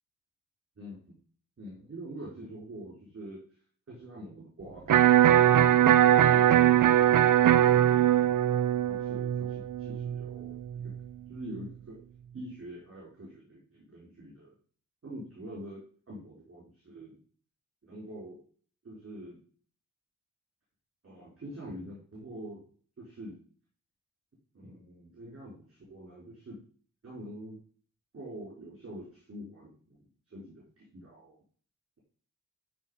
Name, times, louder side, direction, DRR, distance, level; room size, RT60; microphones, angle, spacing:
voice 1, 0.8-1.1 1.6-3.4 3.9-5.1 8.8-10.9 11.2-12.0 12.3-14.5 15.0-17.2 17.8-18.4 18.8-19.4 21.0-22.7 23.0-23.4 24.5-26.6 27.0-27.6 28.1-30.0 30.3-31.4, right 1 dB, 40° right, -5 dB, 4.1 m, -45 dB
Electric guitar, 4.9-10.9, right 11 dB, 65° right, 0.6 m, -22 dB
13.0 x 4.3 x 5.5 m, 0.44 s
wide cardioid pair, 180°, 34 cm